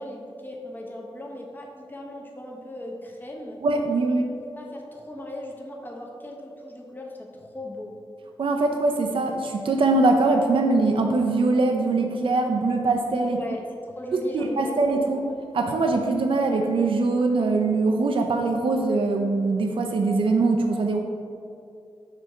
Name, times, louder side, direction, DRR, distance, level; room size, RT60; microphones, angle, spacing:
voice 1, 0.0-3.6 4.4-8.0 13.4-14.8, left 1 dB, 20° left, -1 dB, 0.8 m, -38 dB
voice 2, 3.6-4.2 8.4-13.4 14.3-15.2 15.5-21.0, right 3 dB, 60° right, 3 dB, 0.4 m, -22 dB
6.4 x 4.1 x 3.6 m, 2.5 s
wide cardioid pair, 120°, 10 cm